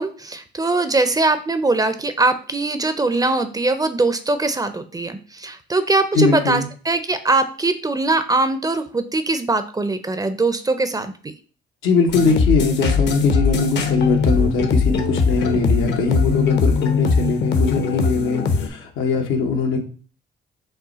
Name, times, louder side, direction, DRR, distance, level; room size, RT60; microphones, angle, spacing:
voice 1, 0.0-11.1, right 3 dB, 20° right, 11 dB, 0.5 m, -21 dB
voice 2, 6.1-6.6 11.8-19.8, left 4 dB, 90° left, 2 dB, 1.0 m, -21 dB
sound 1, 12.1-18.7, left 5 dB, 60° left, 0.8 m, -20 dB
5.5 x 2.2 x 4.0 m, 0.39 s
cardioid pair, 90°, 20 cm